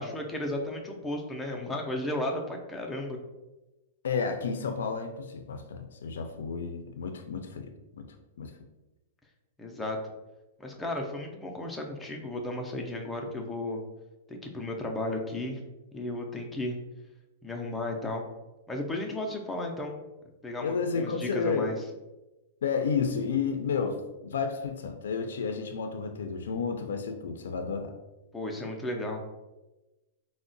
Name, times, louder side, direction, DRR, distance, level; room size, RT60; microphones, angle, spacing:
voice 1, 0.0-3.2 9.6-10.0 10.6-13.8 14.3-15.6 15.9-16.8 17.4-18.2 18.7-20.0 20.4-21.8 28.3-29.2, left 1 dB, 5° left, 0 dB, 0.3 m, -34 dB
voice 2, 4.0-8.1 8.4-8.5 20.6-21.8 22.6-28.0, left 5 dB, 90° left, 6 dB, 0.3 m, -31 dB
3.6 x 2.0 x 2.5 m, 1.1 s
supercardioid pair, 165°, 0 cm